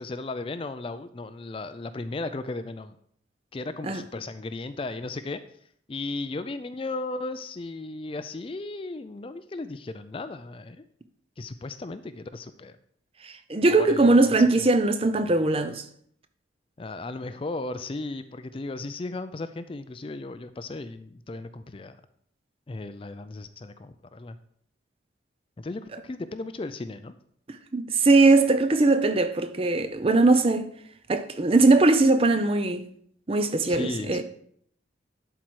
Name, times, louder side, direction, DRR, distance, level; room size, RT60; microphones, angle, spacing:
voice 1, 0.0-3.0 3.5-5.4 5.9-10.8 11.4-12.8 13.7-14.7 16.8-22.0 22.7-24.4 25.6-27.1 33.7-34.2, left 2 dB, 30° left, 0.4 m, -35 dB
voice 2, 13.2-15.8 27.7-30.7 31.1-32.9 33.3-34.2, right 3 dB, 30° right, 0.5 m, -20 dB
11.5 x 4.6 x 4.6 m
head